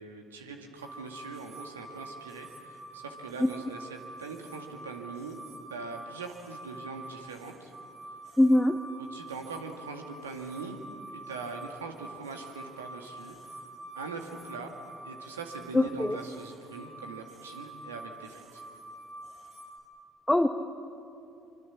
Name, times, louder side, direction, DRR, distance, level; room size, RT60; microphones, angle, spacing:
voice 1, 0.0-5.4 5.7-7.7 9.0-10.8 11.1-13.4 14.0-14.8 15.0-18.6, right 4 dB, 85° right, 4 dB, 2.2 m, -42 dB
sound 1, 0.8-19.8, right 2 dB, 55° right, 5.5 m, -47 dB
voice 2, 8.4-8.8 15.7-16.2 20.3-20.5, left 1 dB, 5° left, 5 dB, 1.3 m, -22 dB
25.0 x 25.0 x 7.3 m, 2.7 s
hypercardioid pair, 55°, 0 cm